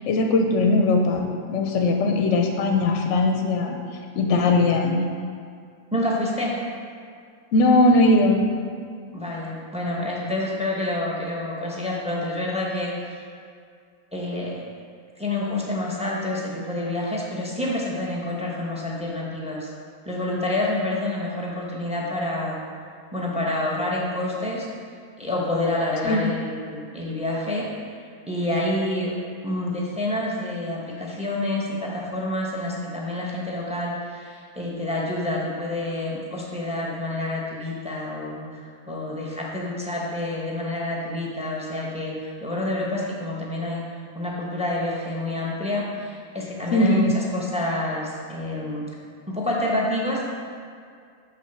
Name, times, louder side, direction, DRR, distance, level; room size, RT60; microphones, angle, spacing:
voice 1, 0.1-3.8 4.1-5.0 7.5-8.5 26.0-26.3 46.7-47.1, left 2 dB, 65° left, 3 dB, 0.8 m, -19 dB
voice 2, 5.9-6.6 9.1-12.9 14.1-14.6 15.2-19.7 20.1-22.6 23.1-24.7 25.2-27.6 28.3-29.1 29.4-43.8 44.1-48.9 49.3-50.2, left 1 dB, 5° right, -4 dB, 0.7 m, -28 dB
5.9 x 3.8 x 5.9 m, 2.2 s
omnidirectional pair, 1.6 m